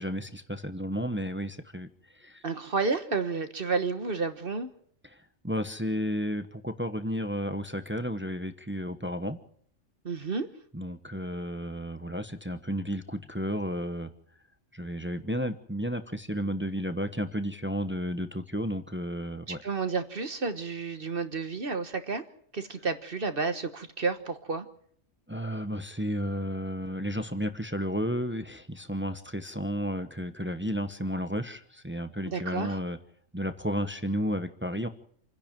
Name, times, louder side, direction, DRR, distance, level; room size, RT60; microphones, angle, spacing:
voice 1, 0.0-1.9 2.1-2.4 5.0-9.4 10.7-14.1 14.7-19.6 25.3-33.0 33.3-34.9, equal, 10° right, 9 dB, 0.9 m, -32 dB
voice 2, 2.4-4.7 10.0-10.5 19.5-22.2 22.5-24.6 32.3-32.8, right 4 dB, 45° right, 9 dB, 1.4 m, -31 dB
27.5 x 10.5 x 9.0 m, 0.64 s
omnidirectional pair, 1.4 m